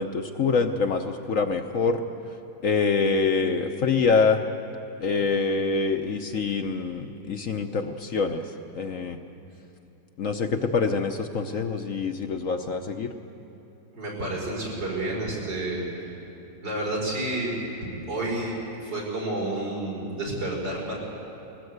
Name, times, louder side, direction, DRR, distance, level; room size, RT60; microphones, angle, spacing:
voice 1, 0.0-2.0 2.6-4.4 5.0-9.2 10.2-13.1, left 4 dB, 55° left, 6 dB, 1.0 m, -25 dB
voice 2, 13.9-16.1 16.6-17.5 18.1-20.9, right 1 dB, 80° right, -3 dB, 6.0 m, -30 dB
20.5 x 19.0 x 8.0 m, 2.8 s
omnidirectional pair, 1.9 m